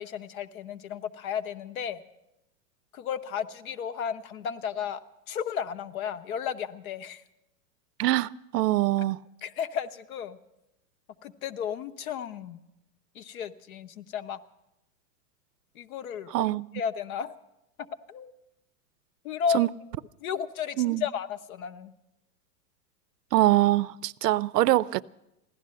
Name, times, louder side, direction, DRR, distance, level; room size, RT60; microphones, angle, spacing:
voice 1, 0.0-2.0 2.9-5.0 5.3-7.2 9.0-9.1 9.4-10.4 11.2-12.6 13.1-14.4 15.8-16.5 16.7-17.3 18.1-18.3 19.2-19.7 20.2-21.9, left 7 dB, 60° left, 0.9 m, -33 dB
voice 2, 8.0-9.2 16.3-16.7 19.5-19.7 20.8-21.0 23.3-25.0, right 16 dB, 80° right, 0.6 m, -23 dB
16.0 x 11.5 x 7.6 m
supercardioid pair, 160°, 48 cm